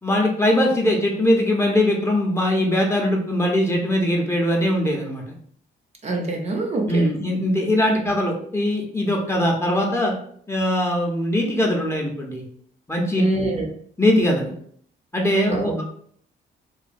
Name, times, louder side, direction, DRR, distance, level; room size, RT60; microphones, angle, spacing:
voice 1, 0.0-5.2 6.9-10.1 10.5-12.4 12.9-13.2 14.0-14.5 15.1-15.8, left 1 dB, 15° left, -1 dB, 0.6 m, -21 dB
voice 2, 6.0-7.1 13.1-13.7 15.5-15.8, right 2 dB, 35° right, 1 dB, 0.6 m, -25 dB
3.1 x 2.2 x 2.5 m, 0.62 s
cardioid pair, 90°, 20 cm